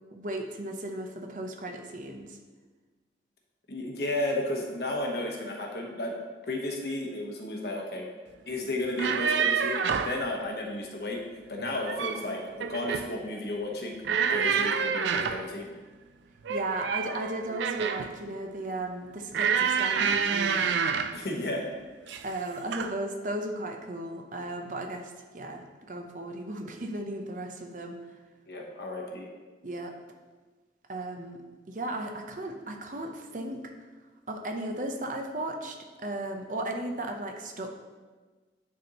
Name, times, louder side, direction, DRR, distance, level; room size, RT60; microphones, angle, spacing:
voice 1, 0.1-2.4 16.5-20.8 22.2-28.0 29.6-29.9 30.9-31.4 31.7-33.7 34.3-37.7, right 1 dB, 45° right, 3 dB, 0.6 m, -35 dB
voice 2, 3.7-6.1 6.5-8.1 8.5-11.2 11.5-14.0 14.3-15.7 21.1-21.7 28.5-29.3, left 1 dB, 65° left, 0 dB, 1.0 m, -33 dB
sound 1, 8.8-10.2 11.6-12.3 12.6-13.1 14.0-15.5 16.4-18.1 19.3-21.2 22.1-22.4 22.7-22.9, right 6 dB, 85° right, 0.4 m, -28 dB
9.4 x 4.3 x 2.9 m, 1.3 s
head